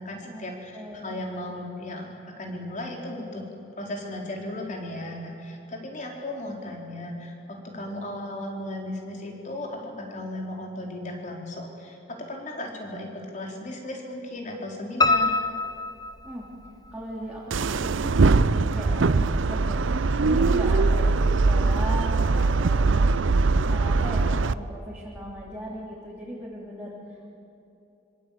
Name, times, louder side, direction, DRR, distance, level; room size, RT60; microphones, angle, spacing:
voice 1, 0.0-3.4 3.8-12.0 12.3-15.4, left 1 dB, 40° left, 0 dB, 4.3 m, -36 dB
voice 2, 0.7-1.2 16.2-16.5 16.9-27.3, equal, 5° right, -6 dB, 3.5 m, -37 dB
Piano, 15.0-16.9 17.3-18.2 18.5-18.6 19.1-19.2 19.4-19.5, left 3 dB, 20° left, 0.8 m, -25 dB
sound 1, 17.5-24.5, right 3 dB, 75° right, 0.6 m, -21 dB
25.5 x 25.0 x 8.6 m, 2.8 s
head